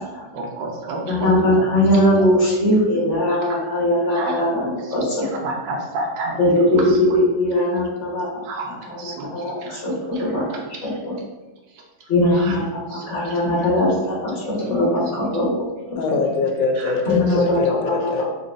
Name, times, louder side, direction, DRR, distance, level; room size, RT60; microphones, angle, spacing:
voice 1, 0.0-1.7 1.9-2.3 3.1-3.4 4.1-4.5 4.8-5.0 5.2-7.0 8.4-9.8 10.1-11.0 11.7-12.6 12.9-13.7 16.8-17.4, right 2 dB, 75° right, 0 dB, 1.4 m, -32 dB
voice 2, 1.1-5.2 6.4-8.2 9.0-10.4 10.8-11.1 12.1-12.6 12.9-15.5 15.9-16.0 17.1-18.1, left 1 dB, 45° left, -6 dB, 1.4 m, -20 dB
voice 3, 16.0-18.3, left 4 dB, 85° left, 3 dB, 1.3 m, -22 dB
3.9 x 3.8 x 2.5 m, 1.1 s
omnidirectional pair, 2.0 m